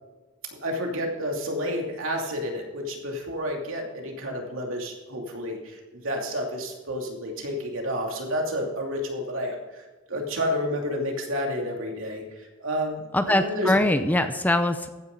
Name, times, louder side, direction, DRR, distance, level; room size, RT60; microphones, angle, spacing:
voice 1, 0.6-13.7, equal, 75° right, 1 dB, 2.7 m, -30 dB
voice 2, 13.1-14.9, left 1 dB, 10° left, 9 dB, 0.6 m, -22 dB
14.5 x 10.0 x 3.9 m, 1.2 s
head